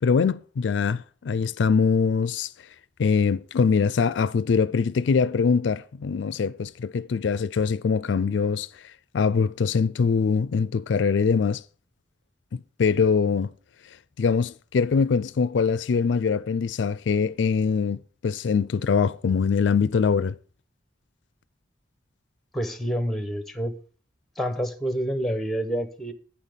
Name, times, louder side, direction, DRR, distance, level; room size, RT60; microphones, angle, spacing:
voice 1, 0.0-2.5 3.0-11.6 12.5-13.5 14.2-20.4, left 5 dB, 70° left, 0.4 m, -23 dB
voice 2, 22.5-23.7 24.4-26.1, equal, ahead, 1.0 m, -28 dB
8.6 x 5.7 x 6.7 m
head